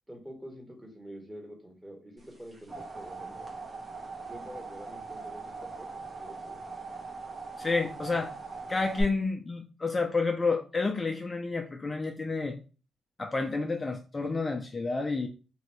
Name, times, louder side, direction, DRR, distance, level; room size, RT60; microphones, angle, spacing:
voice 1, 0.1-3.5 4.2-6.6, equal, 15° right, 0 dB, 1.7 m, -47 dB
sound 1, 2.3-9.0, right 3 dB, 35° right, 1.3 m, -41 dB
voice 2, 7.6-8.4 8.7-12.6 13.2-15.3, left 3 dB, 30° left, 3 dB, 0.5 m, -30 dB
3.1 x 2.8 x 3.1 m, 0.35 s
cardioid pair, 65°, 0 cm